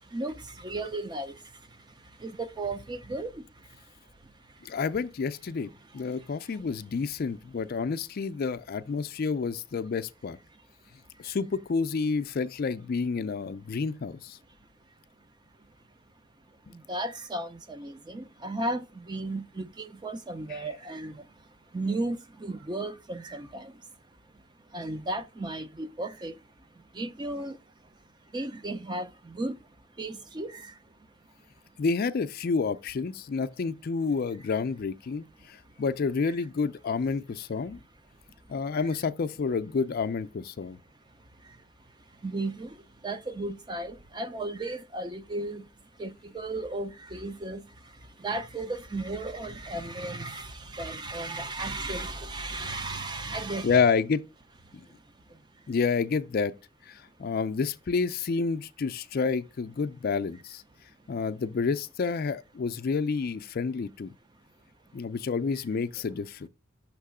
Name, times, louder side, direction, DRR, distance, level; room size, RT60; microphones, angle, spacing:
voice 1, 0.0-4.8 5.7-6.7 10.5-10.7 11.1-11.4 15.2-15.3 15.6-15.7 16.5-31.1 31.4-31.5 31.7-31.8 35.4-35.8 36.2-36.3 37.5-37.8 38.1-39.0 40.9-53.9 54.7-55.7 64.8-65.0, right 2 dB, 20° right, 0.4 m, -36 dB
voice 2, 4.6-5.7 5.9-10.4 11.2-14.4 31.8-37.8 38.5-40.8 53.6-54.2 55.7-56.5 56.9-60.6 61.1-64.1 64.9-66.5, left 5 dB, 45° left, 0.4 m, -29 dB
6.6 x 3.0 x 4.8 m
head